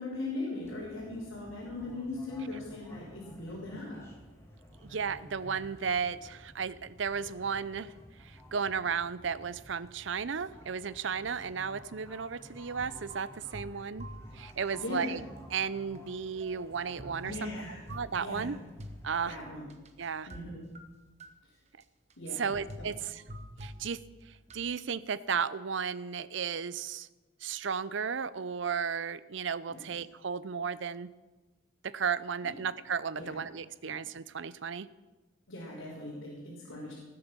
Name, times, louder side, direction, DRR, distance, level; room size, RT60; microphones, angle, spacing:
voice 1, 0.0-4.0 14.8-15.1 17.2-17.8 18.1-18.5 19.3-19.7 20.3-20.7 22.2-22.5 22.8-22.9 29.7-29.9 32.4-32.5 33.1-33.4 33.8-33.9 35.5-36.9, left 2 dB, 80° left, -6 dB, 4.2 m, -39 dB
sound 1, 0.6-19.4, equal, 15° left, 2.2 m, -54 dB
voice 2, 4.8-7.9 8.2-14.1 14.3-15.2 15.5-17.5 17.9-18.6 19.0-19.4 20.0-20.3 22.4-23.2 23.6-24.0 24.3-27.1 27.4-31.1 31.8-34.9, right 6 dB, 65° right, 17 dB, 0.6 m, -34 dB
sound 2, 12.8-14.9 15.2-20.5 20.8-21.3 21.8-21.9 22.1-22.3 22.5-24.7, equal, 35° right, 1.2 m, -48 dB
19.5 x 7.8 x 6.1 m, 1.1 s
head